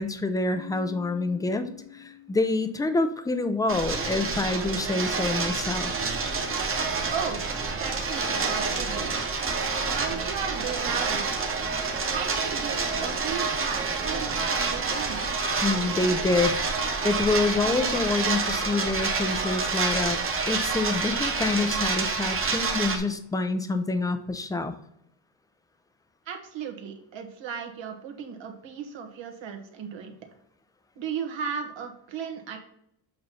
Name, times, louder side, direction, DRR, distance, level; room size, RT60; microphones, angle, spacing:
voice 1, 0.0-5.9 15.6-20.2 20.5-24.7, left 3 dB, 10° left, 9 dB, 0.3 m, -27 dB
Keyboard (musical), 0.5-3.2, left 13 dB, 80° left, 1.6 m, -46 dB
sound 1, 3.7-23.0, right 4 dB, 30° right, 1.0 m, -28 dB
voice 2, 7.1-7.4 7.7-9.1 9.9-11.3 12.0-15.3 26.3-30.1 31.0-32.6, right 7 dB, 85° right, 4 dB, 1.4 m, -35 dB
7.7 x 3.0 x 5.5 m, 0.73 s
wide cardioid pair, 165°, 44 cm